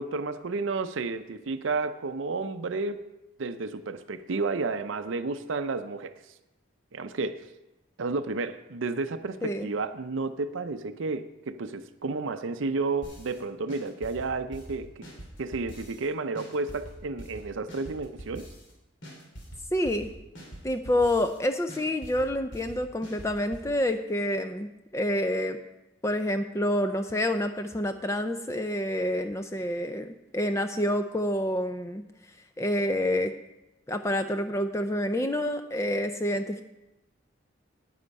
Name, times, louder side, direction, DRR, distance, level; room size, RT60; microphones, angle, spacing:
voice 1, 0.0-3.0 3.4-6.1 6.9-7.4 8.0-15.0 15.4-18.5, right 3 dB, 70° right, 10 dB, 0.5 m, -31 dB
sound 1, 13.0-13.4 13.7-16.1 16.4-18.7 19.0-21.4 21.7-23.7, right 1 dB, 65° left, 2.6 m, -44 dB
voice 2, 19.7-20.1 20.6-25.6 26.0-32.0 32.6-33.3 33.9-36.6, left 1 dB, 15° left, 8 dB, 0.4 m, -28 dB
9.9 x 9.2 x 5.3 m, 0.97 s
head